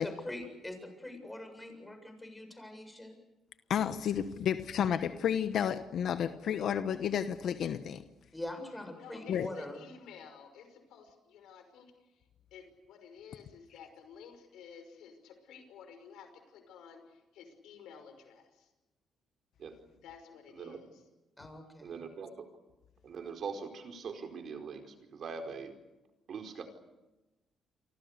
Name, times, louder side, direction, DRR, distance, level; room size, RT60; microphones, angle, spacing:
voice 1, 0.0-3.2 8.3-9.8 21.4-22.0, left 1 dB, 10° left, 6 dB, 7.4 m, -43 dB
voice 2, 3.7-8.0 9.3-9.5, left 8 dB, 70° left, 10 dB, 1.2 m, -31 dB
voice 3, 8.9-18.7 20.0-21.0, left 6 dB, 85° left, 7 dB, 5.7 m, -53 dB
voice 4, 21.8-22.5 23.0-25.7 26.3-26.6, right 5 dB, 60° right, 5 dB, 4.7 m, -42 dB
29.0 x 24.5 x 6.8 m, 1.1 s
cardioid pair, 90°, 0 cm